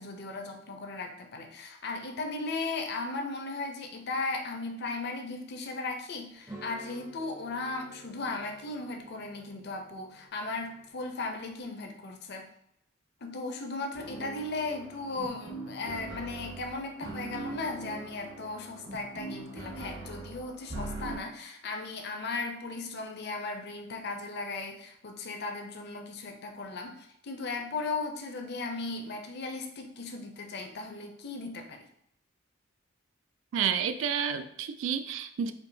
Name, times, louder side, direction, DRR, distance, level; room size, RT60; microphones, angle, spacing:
voice 1, 0.0-12.5 13.2-31.9, left 3 dB, 55° left, 4 dB, 0.6 m, -37 dB
sound 1, 6.4-11.6, right 2 dB, 15° right, 0.5 m, -52 dB
sound 2, 13.9-21.2, right 2 dB, 60° right, 1.0 m, -42 dB
voice 2, 33.5-35.5, right 7 dB, 75° right, 10 dB, 0.3 m, -30 dB
4.5 x 2.7 x 2.7 m, 0.75 s
head